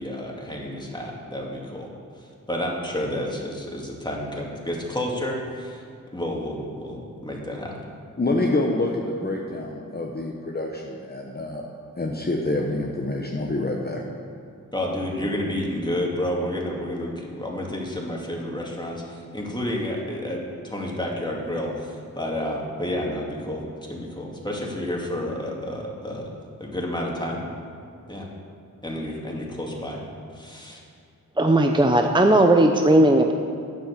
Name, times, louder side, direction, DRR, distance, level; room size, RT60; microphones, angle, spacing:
voice 1, 0.0-1.9 2.2-5.8 6.1-7.8 14.7-26.3 26.6-27.4 28.1-28.3 28.8-30.0 30.3-30.8, left 1 dB, 15° left, -2 dB, 2.4 m, -30 dB
voice 2, 8.2-11.6 12.0-14.0, left 2 dB, 30° left, -1 dB, 1.1 m, -27 dB
voice 3, 31.4-33.3, right 1 dB, 15° right, 4 dB, 0.7 m, -17 dB
9.2 x 7.6 x 7.1 m, 2.4 s
cardioid pair, 50°, 34 cm